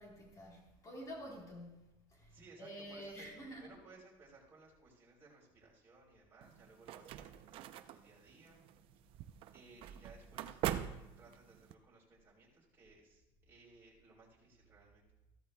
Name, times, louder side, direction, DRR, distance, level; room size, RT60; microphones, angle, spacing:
voice 1, 0.0-3.8, equal, 35° left, -1 dB, 3.6 m, -49 dB
voice 2, 2.3-8.6 9.5-10.6 11.0-15.0, right 3 dB, 25° right, -5 dB, 3.7 m, -61 dB
sound 1, 6.4-11.7, right 11 dB, 60° right, 0.6 m, -43 dB
13.5 x 13.0 x 2.3 m, 0.94 s
cardioid pair, 120°, 10 cm